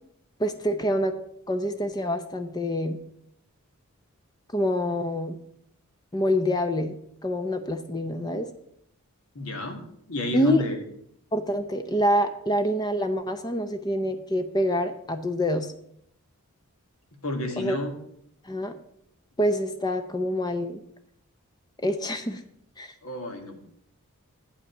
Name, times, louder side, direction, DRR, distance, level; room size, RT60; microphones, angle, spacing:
voice 1, 0.4-1.1 1.5-3.0 4.5-5.4 6.1-7.0 7.2-8.5 10.3-10.6 11.3-15.7 17.6-17.8 18.4-18.8 19.4-20.8 21.8-22.4 22.8-22.9, equal, 20° left, 8 dB, 0.6 m, -26 dB
voice 2, 9.4-9.8 10.1-10.8 17.2-17.9 23.0-23.6, left 1 dB, 70° left, 4 dB, 1.8 m, -31 dB
8.4 x 5.7 x 7.1 m, 0.71 s
head